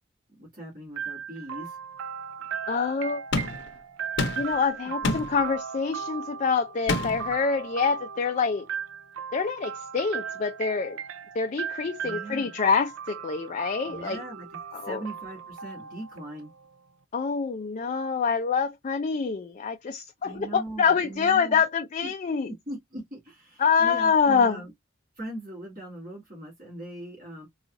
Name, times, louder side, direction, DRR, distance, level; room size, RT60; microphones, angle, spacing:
voice 1, 0.4-1.8 5.0-5.1 12.0-12.5 13.8-14.5 14.7-16.5 20.2-21.6 22.0-22.1 22.5-24.7 25.2-27.5, right 1 dB, 45° right, 1.9 m, -40 dB
sound 1, 1.0-16.7, right 7 dB, 85° right, 0.5 m, -37 dB
voice 2, 2.7-3.2 4.4-8.6 9.3-11.0 11.3-14.2 14.7-15.0 17.1-22.5 23.6-24.6, left 5 dB, 35° left, 0.4 m, -26 dB
sound 2, 3.3-3.7 4.2-4.6 5.0-5.4 6.9-7.3, left 2 dB, 60° left, 0.7 m, -28 dB
4.0 x 2.4 x 2.5 m
head